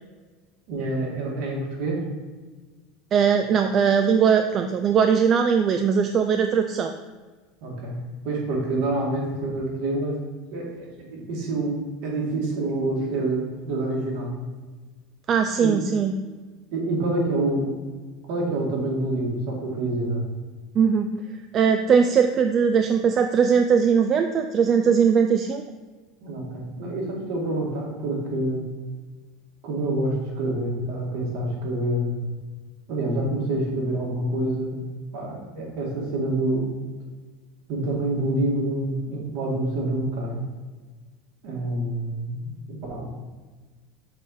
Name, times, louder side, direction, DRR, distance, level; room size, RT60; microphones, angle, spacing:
voice 1, 0.7-2.0 7.6-8.0 8.2-10.2 10.5-14.3 15.6-15.7 16.7-17.7 18.3-20.2 26.2-28.6 29.6-32.2 32.9-34.8 35.1-36.6 37.7-40.3 41.4-43.1, right 2 dB, 60° right, -3 dB, 2.3 m, -27 dB
voice 2, 3.1-7.0 15.3-16.1 20.8-21.1 21.5-25.6, right 6 dB, 35° right, 6 dB, 0.4 m, -20 dB
6.7 x 4.4 x 4.8 m, 1.3 s
supercardioid pair, 140°, 0 cm